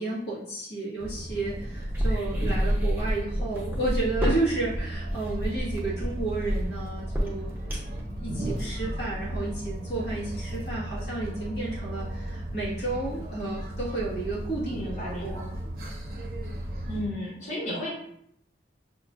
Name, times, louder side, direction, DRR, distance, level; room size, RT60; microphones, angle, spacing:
voice 1, 0.0-7.5 8.2-15.5, right 2 dB, 75° left, -6 dB, 1.4 m, -32 dB
sound 1, 1.0-17.1, right 1 dB, 55° right, 0.7 m, -35 dB
sound 2, 1.9-8.0, equal, 10° right, 0.6 m, -28 dB
voice 2, 14.7-15.5 16.8-17.9, left 1 dB, 40° left, -8 dB, 1.3 m, -34 dB
5.8 x 2.4 x 2.4 m, 0.71 s
head